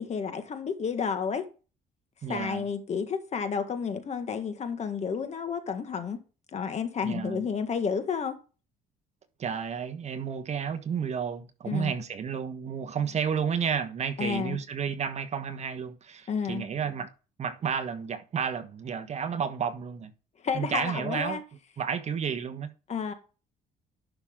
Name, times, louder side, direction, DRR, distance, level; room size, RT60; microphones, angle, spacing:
voice 1, 0.0-1.4 2.3-6.2 6.5-8.4 11.7-11.9 14.2-14.6 16.3-16.6 20.4-21.4 22.9-23.1, left 6 dB, 40° left, 1.8 m, -31 dB
voice 2, 2.2-2.6 7.0-7.4 9.4-17.1 17.4-20.1 20.5-21.4 21.8-22.7, right 7 dB, 40° right, 1.4 m, -31 dB
11.0 x 5.9 x 3.8 m
cardioid pair, 110°, 17 cm